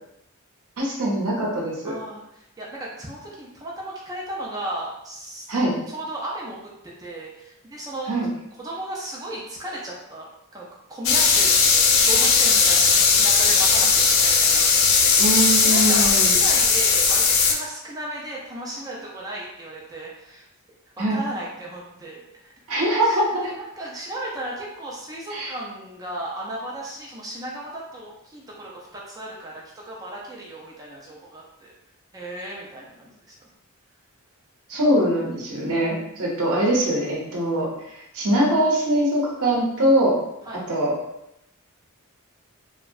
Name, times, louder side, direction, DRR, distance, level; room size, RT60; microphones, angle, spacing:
voice 1, 0.8-2.0 5.5-5.7 8.1-8.3 15.2-16.3 21.0-21.2 22.7-23.4 25.3-25.5 34.7-40.2 40.7-40.9, right 1 dB, 80° right, -3 dB, 0.7 m, -22 dB
voice 2, 1.8-5.5 5.9-6.6 7.0-8.3 8.6-10.3 10.5-11.6 11.9-20.5 21.0-22.5 23.0-31.7 32.1-33.1 40.4-40.6, right 1 dB, 15° right, -4 dB, 0.3 m, -35 dB
sound 1, 11.0-17.5, left 5 dB, 65° left, 0.4 m, -18 dB
2.6 x 2.1 x 2.3 m, 0.83 s
head